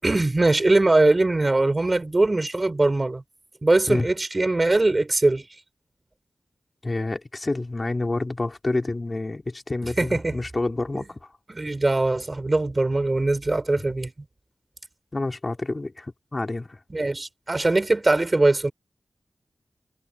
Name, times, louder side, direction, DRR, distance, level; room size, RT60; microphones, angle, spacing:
voice 1, 0.0-3.2 3.6-5.4 10.0-10.4 10.9-11.0 11.5-14.1 16.9-18.7, right 2 dB, 30° right, 7.4 m, -21 dB
voice 2, 6.8-11.2 15.1-16.8, left 2 dB, 35° left, 3.7 m, -28 dB
wide cardioid pair, 95°, 0 cm